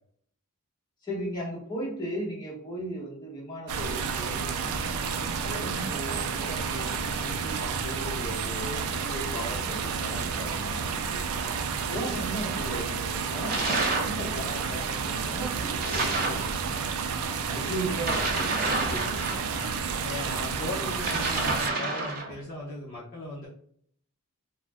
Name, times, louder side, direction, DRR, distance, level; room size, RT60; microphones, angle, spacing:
voice 1, 1.0-4.9 5.5-11.2 11.9-16.6 17.5-19.9, right 1 dB, 20° left, -5 dB, 1.0 m, -37 dB
sound 1, 3.7-21.7, right 5 dB, 80° right, 0.3 m, -31 dB
sound 2, 13.5-14.2 15.8-16.5 18.0-19.7 20.9-22.3, right 2 dB, 40° right, 0.6 m, -29 dB
voice 2, 20.0-23.5, left 2 dB, 40° left, -7 dB, 0.6 m, -37 dB
2.4 x 2.1 x 3.3 m, 0.63 s
head